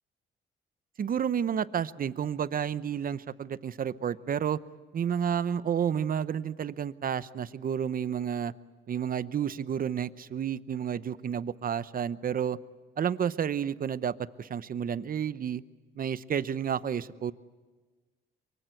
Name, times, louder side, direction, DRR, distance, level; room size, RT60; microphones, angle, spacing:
voice 1, 1.0-4.6 4.9-8.5 8.9-12.6 13.0-15.6 16.0-17.3, right 8 dB, 45° right, 16 dB, 0.8 m, -30 dB
24.0 x 23.5 x 8.2 m, 1.3 s
cardioid pair, 90°, 20 cm